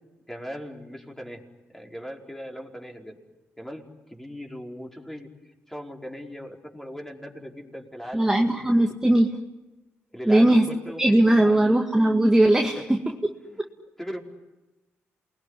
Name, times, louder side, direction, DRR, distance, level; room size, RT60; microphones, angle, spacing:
voice 1, 0.3-1.4 1.7-3.2 3.6-5.3 5.7-8.6 10.1-11.8 12.6-12.9 13.4-13.6 14.0-14.2, equal, 5° left, 0 dB, 4.8 m, -39 dB
voice 2, 8.1-9.4 10.3-10.7 11.0-13.0, right 1 dB, 10° right, 2 dB, 2.0 m, -19 dB
28.0 x 21.0 x 9.9 m, 1.1 s
cardioid pair, 70°, 5 cm